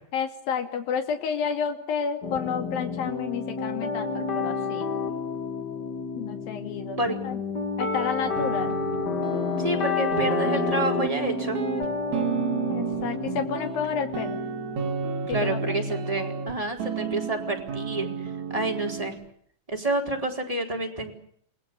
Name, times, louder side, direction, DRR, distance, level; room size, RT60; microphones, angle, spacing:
voice 1, 0.1-4.9 6.2-7.0 7.2-7.4 7.8-8.8 12.7-14.4 15.3-16.0, left 7 dB, 75° left, 5 dB, 4.1 m, -30 dB
sound 1, 2.2-14.9, left 5 dB, 40° left, 1.6 m, -30 dB
sound 2, 8.2-9.8 10.1-13.9 14.1-16.5 16.8-19.2, right 7 dB, 55° right, 3.7 m, -32 dB
voice 2, 9.6-11.6 15.3-18.1 18.5-19.2 19.7-21.1, right 2 dB, 10° right, 1 dB, 4.3 m, -28 dB
29.5 x 19.5 x 8.2 m, 0.65 s
omnidirectional pair, 4.1 m